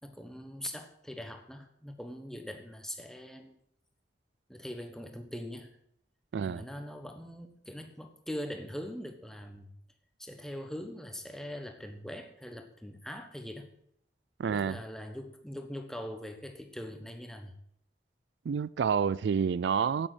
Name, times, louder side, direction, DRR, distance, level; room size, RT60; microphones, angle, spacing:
voice 1, 0.0-3.6 4.5-5.8 6.4-9.7 10.2-13.7 14.4-17.5, equal, 5° left, 1.2 m, -42 dB
voice 2, 6.3-6.6 14.4-14.8 18.5-20.1, right 6 dB, 80° right, 0.4 m, -28 dB
9.0 x 8.5 x 8.0 m
head